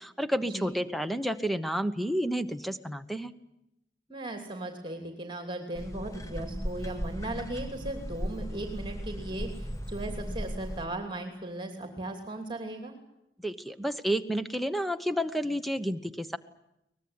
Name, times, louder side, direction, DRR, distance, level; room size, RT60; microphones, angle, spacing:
voice 1, 0.0-3.3 13.4-16.4, equal, ahead, 10 dB, 1.0 m, -30 dB
voice 2, 4.1-12.9, right 1 dB, 30° right, 5 dB, 3.0 m, -37 dB
sound 1, 5.7-10.9, equal, 20° left, 1.3 m, -37 dB
23.0 x 20.0 x 9.7 m, 0.86 s
head